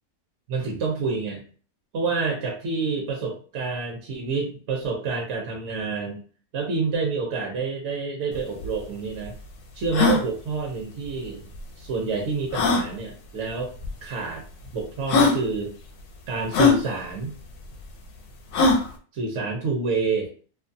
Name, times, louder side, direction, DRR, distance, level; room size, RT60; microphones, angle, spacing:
voice 1, 0.5-1.4 1.9-6.2 6.5-9.3 9.7-11.4 11.8-13.7 14.0-15.7 16.3-17.3 19.1-20.3, right 4 dB, 60° right, 0 dB, 0.8 m, -28 dB
sound 1, 8.3-8.4 8.6-8.7 9.2-9.3 9.8-10.2 11.5-11.6 12.5-12.9 13.8-13.9 14.7-14.8 15.1-15.4 16.5-16.8 18.5-18.9, left 4 dB, 85° left, 1.1 m, -19 dB
2.5 x 2.3 x 2.6 m, 0.41 s
omnidirectional pair, 1.6 m